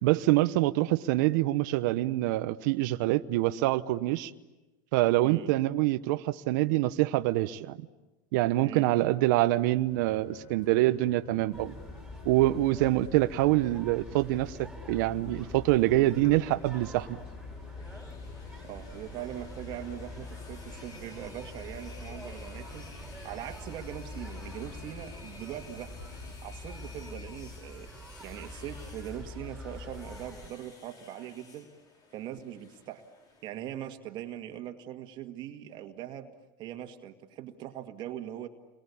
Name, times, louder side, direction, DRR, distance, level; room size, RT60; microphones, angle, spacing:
voice 1, 0.0-4.3 4.9-7.9 8.3-11.7 12.2-17.1, right 17 dB, 65° right, 10 dB, 1.0 m, -25 dB
voice 2, 5.2-5.5 8.6-9.1 18.6-25.9 26.4-27.9 28.2-31.7 32.1-33.0 33.4-36.3 36.6-38.5, right 11 dB, 45° right, 6 dB, 2.0 m, -41 dB
sound 1, 9.9-26.3, left 3 dB, 55° left, 6.4 m, -51 dB
sound 2, 11.5-30.5, left 2 dB, ahead, 5.3 m, -45 dB
sound 3, 17.5-33.5, left 3 dB, 35° left, 5.2 m, -54 dB
30.0 x 23.0 x 8.6 m, 1.1 s
supercardioid pair, 125°, 11 cm